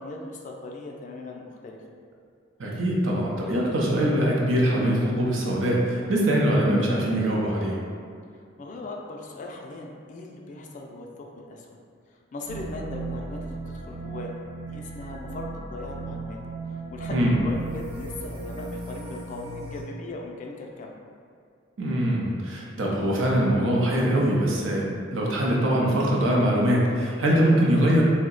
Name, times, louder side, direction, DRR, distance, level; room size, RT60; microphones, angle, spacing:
voice 1, 0.0-1.8 8.6-11.8 12.3-14.3 14.6-16.4 16.7-20.9, left 2 dB, 40° left, 0 dB, 0.3 m, -39 dB
voice 2, 2.6-7.8 17.1-17.3 21.8-28.0, right 1 dB, 80° right, -3 dB, 0.6 m, -23 dB
sound 1, 12.5-19.8, right 3 dB, 30° right, 0.7 m, -36 dB
2.7 x 2.1 x 3.7 m, 2.3 s
head